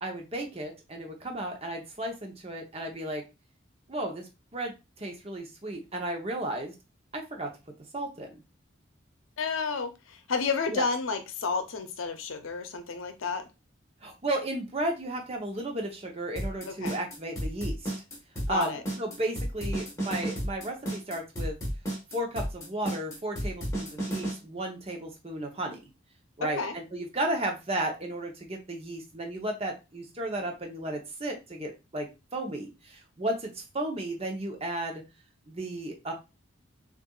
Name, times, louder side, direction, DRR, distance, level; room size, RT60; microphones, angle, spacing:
voice 1, 0.0-3.2 3.9-6.7 7.1-7.5 7.9-8.4 10.7-10.9 14.0-17.9 18.5-21.6 22.1-25.8 26.4-35.0 35.5-36.1, right 1 dB, 30° right, 2 dB, 0.8 m, -34 dB
voice 2, 9.4-13.4 16.6-16.9 18.5-18.8 26.4-26.7, left 4 dB, 80° left, 8 dB, 0.7 m, -31 dB
sound 1, 16.4-24.3, right 1 dB, 15° left, 1.4 m, -32 dB
6.5 x 2.5 x 2.4 m, 0.27 s
head